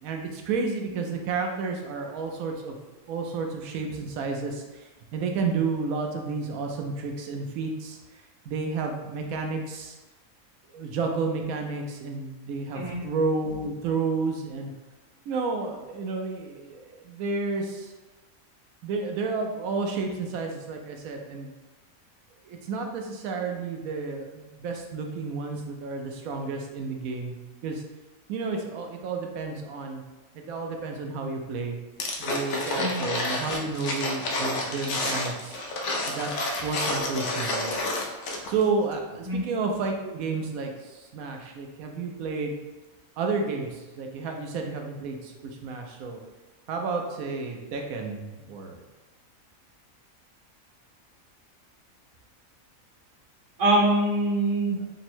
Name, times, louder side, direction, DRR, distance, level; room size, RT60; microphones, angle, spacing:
voice 1, 0.0-2.8 3.1-8.0 8.5-10.0 10.7-14.7 15.3-17.9 18.8-21.5 22.4-27.3 27.6-27.8 28.3-30.0 30.3-31.8 32.2-35.6 36.1-37.7 38.5-42.6 43.2-46.2 46.7-48.8, right 4 dB, 90° right, 3 dB, 1.0 m, -31 dB
sound 1, 32.0-38.6 38.9-39.0, left 2 dB, 65° left, 0.8 m, -30 dB
voice 2, 53.6-54.8, right 1 dB, 65° right, -5 dB, 1.4 m, -23 dB
3.5 x 2.0 x 4.3 m, 1.2 s
omnidirectional pair, 1.5 m